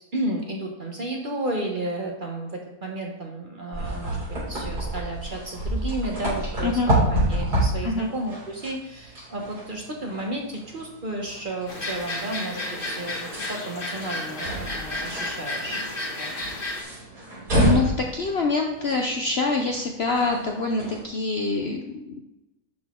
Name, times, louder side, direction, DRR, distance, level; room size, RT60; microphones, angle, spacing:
voice 1, 0.1-4.2 4.5-12.6 12.8-13.2 13.5-16.3 17.7-17.8, right 1 dB, 40° right, 1 dB, 0.9 m, -32 dB
sound 1, 3.7-21.1, right 1 dB, 85° right, 3.8 m, -29 dB
sound 2, 11.7-16.8, left 2 dB, 40° left, 1.2 m, -32 dB
voice 2, 17.6-22.2, left 3 dB, 55° left, 2 dB, 0.7 m, -25 dB
11.5 x 4.0 x 3.6 m, 0.91 s
omnidirectional pair, 1.7 m